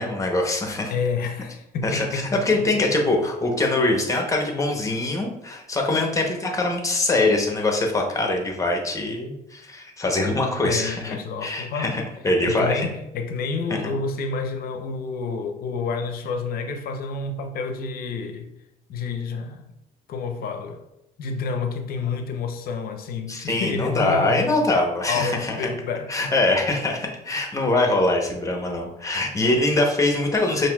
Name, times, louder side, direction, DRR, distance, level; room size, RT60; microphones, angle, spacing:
voice 1, 0.0-0.9 1.8-11.2 11.4-12.9 23.3-25.6 26.1-30.7, left 2 dB, 20° left, 0.8 m, -23 dB
voice 2, 0.9-3.0 10.6-12.0 12.4-18.5 18.9-19.7 20.1-20.8 21.2-24.6 25.1-26.1, left 4 dB, 60° left, 0.6 m, -29 dB
5.6 x 2.6 x 2.3 m
cardioid pair, 110°, 17 cm